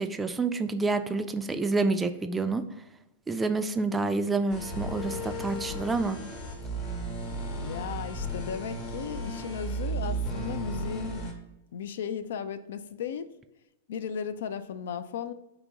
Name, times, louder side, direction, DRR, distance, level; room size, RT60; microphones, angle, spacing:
voice 1, 0.0-2.6 3.3-6.2, right 3 dB, 15° right, 9 dB, 0.3 m, -28 dB
sound 1, 4.5-11.3, right 1 dB, 45° left, 1.0 m, -34 dB
voice 2, 7.6-11.3 11.7-13.3 13.9-15.3, left 7 dB, 70° left, 11 dB, 0.3 m, -35 dB
3.9 x 2.9 x 3.5 m, 0.92 s
hypercardioid pair, 110°, 0 cm